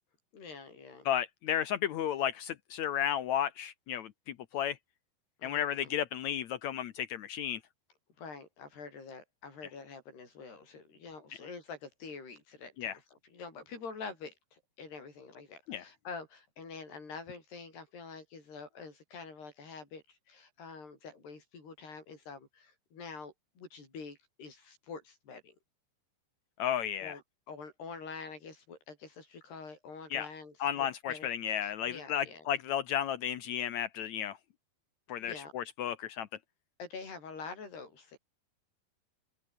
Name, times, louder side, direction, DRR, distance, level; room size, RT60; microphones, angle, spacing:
voice 1, 0.3-1.1 5.4-5.9 8.2-25.5 27.0-27.2 27.5-31.3 31.6-32.5 35.2-35.5 36.8-38.2, left 4 dB, 65° left, 9.7 m, -46 dB
voice 2, 1.0-4.8 5.4-7.6 12.8-12.9 15.7-15.8 26.6-27.2 30.1-30.3 30.6-34.4 35.1-36.3, left 10 dB, 85° left, 1.6 m, -33 dB
open air
omnidirectional pair, 4.9 m